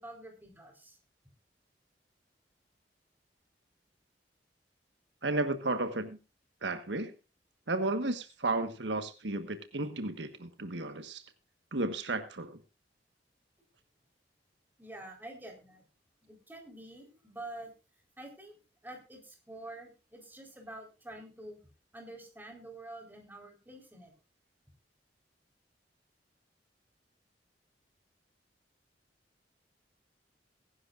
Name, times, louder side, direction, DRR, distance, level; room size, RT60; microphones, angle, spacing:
voice 1, 0.0-1.0 14.8-15.8 16.2-17.7 18.2-18.5 18.8-21.6 21.9-24.1, right 1 dB, 10° right, 4.2 m, -47 dB
voice 2, 5.2-6.2 6.6-7.1 7.7-11.2 11.7-12.6, right 2 dB, 90° right, 1.5 m, -33 dB
21.5 x 11.5 x 2.5 m
head